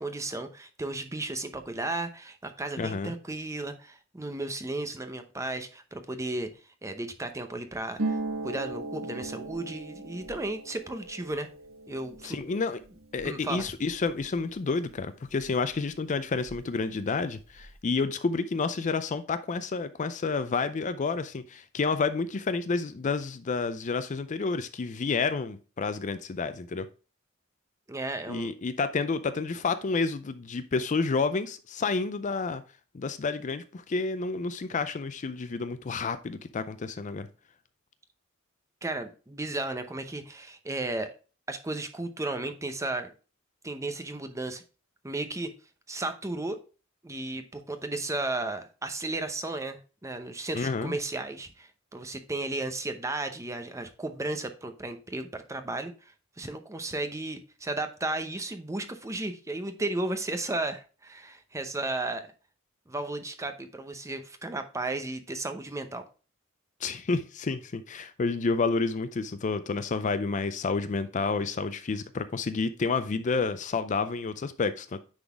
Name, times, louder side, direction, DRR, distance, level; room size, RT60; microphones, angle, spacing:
voice 1, 0.0-6.5 6.8-8.2 8.4-11.5 11.9-12.4 13.2-13.7 27.9-28.5 38.8-41.1 41.5-43.1 43.6-44.6 45.0-45.5 45.9-46.6 47.0-55.9 56.4-62.3 62.9-66.0, right 2 dB, 15° right, 0.7 m, -34 dB
voice 2, 2.8-3.1 12.2-12.8 13.1-26.9 28.3-32.6 32.9-37.3 50.5-51.0 66.8-75.0, left 4 dB, 35° left, 0.4 m, -30 dB
Harp, 8.0-15.5 15.7-16.8 17.1-17.7, right 2 dB, 75° right, 1.4 m, -39 dB
9.7 x 3.9 x 3.4 m
head